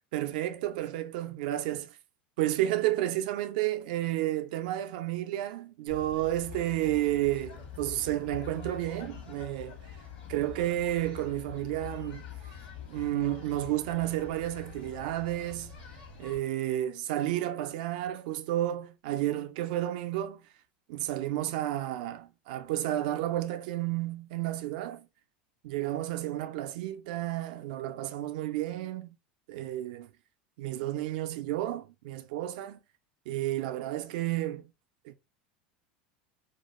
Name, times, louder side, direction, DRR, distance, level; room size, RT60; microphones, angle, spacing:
voice 1, 0.1-2.0 2.4-9.8 10.3-12.3 12.8-15.8 16.2-20.5 20.9-25.1 25.6-29.2 29.5-30.1 30.6-32.8 33.3-34.7 35.0-35.1, right 14 dB, 65° right, 0.4 m, -31 dB
sound 1, 5.9-16.4, left 7 dB, 65° left, 1.0 m, -45 dB
2.4 x 2.3 x 2.9 m
hypercardioid pair, 80°, 5 cm